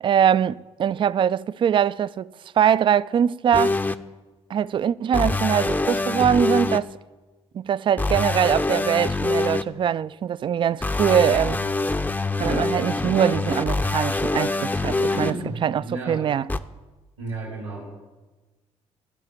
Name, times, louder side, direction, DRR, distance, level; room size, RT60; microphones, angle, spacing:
voice 1, 0.0-3.8 4.5-6.9 7.5-11.6 12.4-15.3 15.6-15.8 16.1-16.4, right 9 dB, 35° right, 0.3 m, -22 dB
sound 1, 3.5-3.9 5.1-6.8 8.0-9.6 10.8-15.3 16.5-16.6, left 2 dB, 10° left, 0.6 m, -24 dB
voice 2, 12.4-12.7 14.9-16.3 17.2-17.9, right 2 dB, 80° right, 2.2 m, -33 dB
12.5 x 5.7 x 8.4 m
figure-of-eight pair, 45°, 15 cm